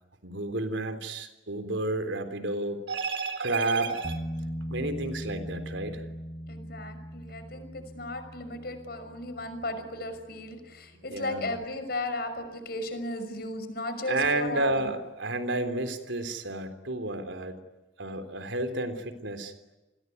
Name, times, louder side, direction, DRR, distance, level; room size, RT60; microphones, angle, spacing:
voice 1, 0.2-4.2 4.7-6.1 11.1-11.6 14.1-17.6 18.0-19.5, right 2 dB, 80° right, 8 dB, 3.6 m, -31 dB
sound 1, 4.0-11.7 14.7-14.8, equal, 35° left, 4.3 m, -40 dB
voice 2, 6.5-14.9, left 1 dB, 55° left, 9 dB, 5.8 m, -35 dB
29.5 x 21.0 x 9.6 m, 1.1 s
head